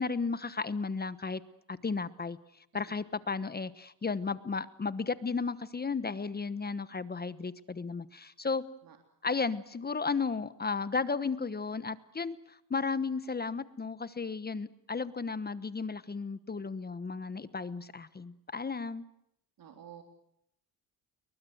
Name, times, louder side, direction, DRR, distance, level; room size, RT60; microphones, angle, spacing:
voice 1, 0.0-1.4 1.7-2.4 2.7-8.6 9.2-19.0, left 4 dB, 25° left, 15 dB, 1.2 m, -34 dB
voice 2, 19.6-20.0, right 10 dB, 60° right, 4 dB, 3.6 m, -50 dB
29.5 x 22.5 x 8.0 m, 0.78 s
cardioid pair, 105°, 39 cm